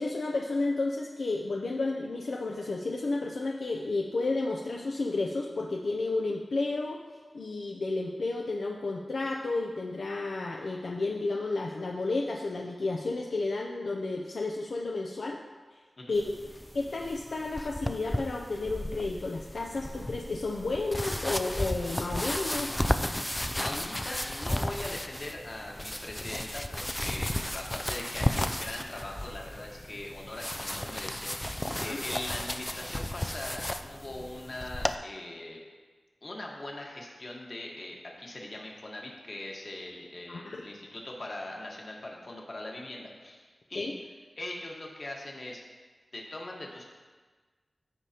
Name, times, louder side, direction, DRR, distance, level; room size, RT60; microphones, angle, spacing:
voice 1, 0.0-7.0 7.3-15.4 16.1-16.2 16.7-22.8 31.8-32.0 40.3-40.6 43.7-43.9, left 3 dB, 75° left, 0 dB, 0.5 m, -32 dB
sound 1, 16.1-35.0, left 1 dB, 10° left, 0.3 m, -34 dB
voice 2, 23.6-35.6 36.2-44.0 44.4-45.6 46.1-46.8, left 1 dB, 45° left, -1 dB, 1.4 m, -41 dB
14.0 x 4.9 x 2.9 m, 1.4 s
wide cardioid pair, 105°, 0 cm